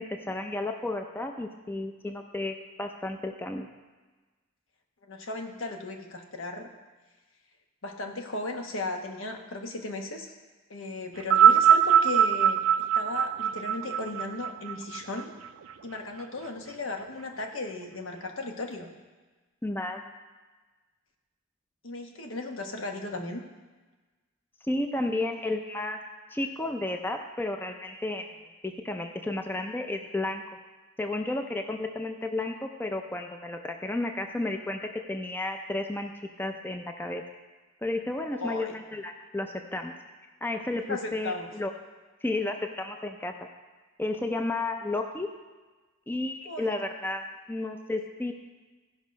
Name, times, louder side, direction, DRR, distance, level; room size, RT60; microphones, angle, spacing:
voice 1, 0.0-3.7 19.6-20.0 24.6-26.0 26.3-28.3 28.6-30.4 31.0-36.1 36.4-37.2 37.8-39.9 40.4-41.7 42.2-43.3 44.0-45.3 46.1-48.3, left 2 dB, 10° left, 4 dB, 0.5 m, -32 dB
voice 2, 5.1-6.7 7.8-10.3 10.7-12.6 12.9-15.3 15.8-18.9 21.8-23.4 38.3-38.7 40.9-41.5 46.4-46.7, left 2 dB, 70° left, 4 dB, 1.1 m, -36 dB
sound 1, 11.2-15.7 16.6-16.7, right 8 dB, 85° right, 0.4 m, -22 dB
14.5 x 5.4 x 5.2 m, 1.3 s
head